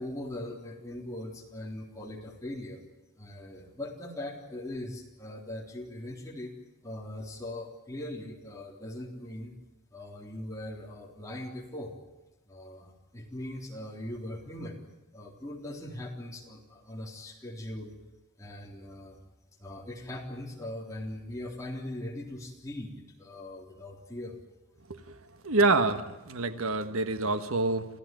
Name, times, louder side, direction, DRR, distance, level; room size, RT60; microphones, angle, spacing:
voice 1, 0.0-2.8 3.1-6.5 6.8-9.5 9.9-11.9 12.5-14.8 15.1-18.0 18.4-19.2 19.6-24.4, left 1 dB, 15° left, -1 dB, 3.6 m, -40 dB
voice 2, 25.4-27.9, right 3 dB, 75° right, 10 dB, 1.4 m, -27 dB
27.5 x 15.5 x 9.2 m, 1.0 s
head